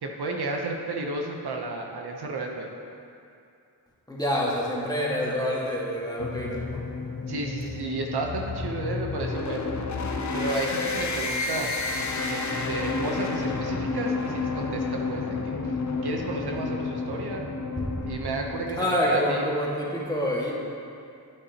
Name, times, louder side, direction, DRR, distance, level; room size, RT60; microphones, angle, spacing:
voice 1, 0.0-2.7 7.2-10.0 10.3-11.7 12.3-15.7 16.0-17.5 18.0-19.5, right 3 dB, 70° right, 1 dB, 0.9 m, -32 dB
voice 2, 4.1-6.8 17.8-18.1 18.8-20.5, equal, 10° left, -5 dB, 1.8 m, -27 dB
sound 1, 6.2-18.7, left 4 dB, 45° left, 0.8 m, -30 dB
8.6 x 8.3 x 2.9 m, 2.5 s
cardioid pair, 55°, 41 cm